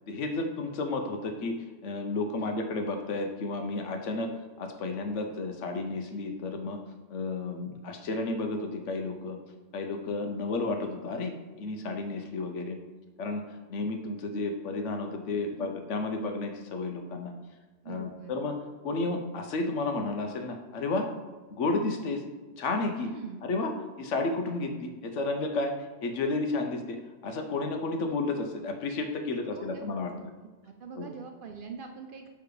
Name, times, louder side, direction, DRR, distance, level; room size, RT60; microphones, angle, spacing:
voice 1, 0.1-1.6 1.8-4.3 4.6-6.8 7.1-9.4 9.7-12.8 13.2-13.4 13.7-17.3 17.9-18.6 18.8-21.1 21.5-22.2 22.6-23.1 23.4-23.7 24.0-25.7 26.0-27.0 27.2-30.1 31.0-31.1, left 3 dB, 80° left, 5 dB, 1.1 m, -32 dB
voice 2, 17.8-18.4 23.0-23.5 29.4-29.8 30.1-30.2 30.6-32.3, right 6 dB, 55° right, 4 dB, 0.7 m, -44 dB
7.0 x 3.4 x 4.8 m, 1.3 s
omnidirectional pair, 1.2 m